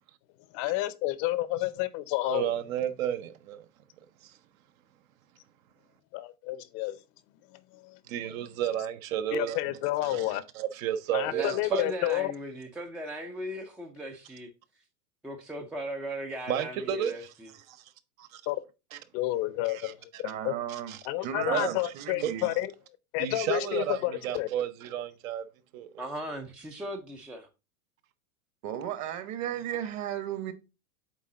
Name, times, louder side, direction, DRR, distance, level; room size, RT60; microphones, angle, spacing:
voice 1, 0.5-2.5 6.1-7.0 7.5-8.0 9.3-10.4 11.1-12.3 18.5-18.6 19.1-20.0 20.4-20.5 21.0-22.7 23.1-24.5, left 16 dB, 45° left, 0.6 m, -30 dB
voice 2, 2.2-3.6 4.2-4.3 8.1-11.8 16.5-17.1 17.7-17.8 18.2-18.4 18.9-19.0 19.7-20.2 20.9-21.0 21.4-21.8 22.2-22.3 23.2-25.4 25.7-25.9, right 10 dB, 65° right, 0.9 m, -32 dB
voice 3, 11.2-14.5 15.2-17.5 26.0-27.5, equal, 5° right, 0.3 m, -38 dB
voice 4, 20.2-22.5 28.6-30.5, right 10 dB, 40° right, 1.1 m, -35 dB
8.3 x 3.7 x 3.7 m
hypercardioid pair, 120°, 43 cm